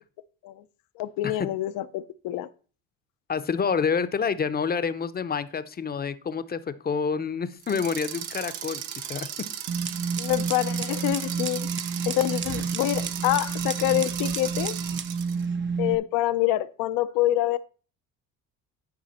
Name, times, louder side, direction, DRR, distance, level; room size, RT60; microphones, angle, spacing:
voice 1, 1.0-2.5 10.2-11.7 12.1-14.8 15.8-17.6, left 15 dB, 70° left, 0.7 m, -26 dB
voice 2, 3.3-8.8 9.1-9.3, left 6 dB, 25° left, 0.7 m, -28 dB
sound 1, 7.6-15.4, right 10 dB, 90° right, 1.0 m, -36 dB
sound 2, 9.7-16.0, right 5 dB, 30° right, 0.6 m, -30 dB
10.5 x 5.0 x 4.2 m
supercardioid pair, 85°, 36 cm